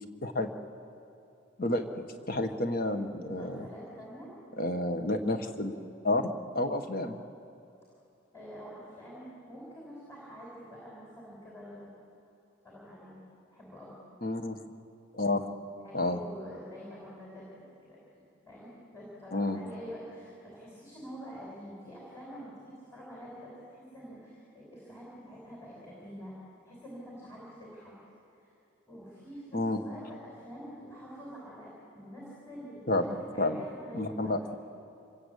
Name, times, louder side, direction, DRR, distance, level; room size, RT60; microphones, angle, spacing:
voice 1, 1.6-3.6 4.6-5.8 6.0-6.2 6.5-7.2 14.2-14.6 15.1-15.4 15.9-16.2 19.3-19.6 29.5-29.8 32.9-33.0 33.4-33.6 33.9-34.5, left 2 dB, 45° left, 6 dB, 1.5 m, -30 dB
voice 2, 3.4-4.3 8.3-11.9 12.6-13.2 13.5-14.0 15.8-17.5 17.8-26.3 26.6-27.9 28.3-28.5 28.9-34.4, equal, 15° left, -6 dB, 5.8 m, -46 dB
26.5 x 21.5 x 8.5 m, 2.7 s
head